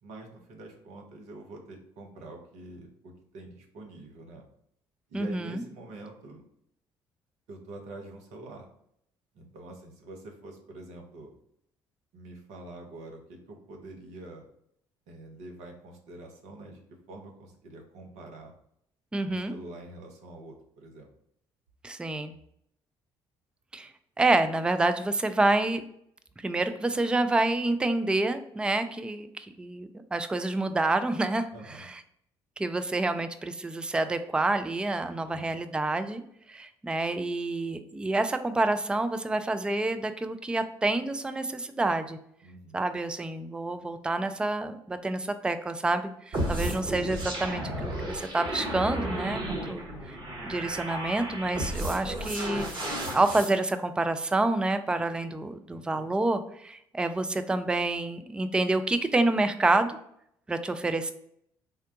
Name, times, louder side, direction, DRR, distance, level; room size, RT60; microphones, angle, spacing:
voice 1, 0.0-4.5 5.1-6.4 7.5-8.7 9.3-11.3 12.1-14.4 15.1-16.8 17.1-18.5 19.2-21.1 31.5-31.9 35.1-35.6 42.4-42.9 49.7-50.0 55.7-56.2, right 2 dB, 60° right, 2 dB, 0.8 m, -46 dB
voice 2, 5.1-5.6 19.1-19.5 21.8-22.3 23.7-23.9 24.2-25.8 26.4-31.5 31.8-32.0 32.6-36.2 36.5-42.2 42.7-49.8 50.4-60.0 60.5-61.1, right 2 dB, 5° right, 9 dB, 0.3 m, -28 dB
sound 1, 46.3-53.5, right 1 dB, 40° right, 1.1 m, -33 dB
3.6 x 2.1 x 2.7 m, 0.71 s
figure-of-eight pair, 50°, 13 cm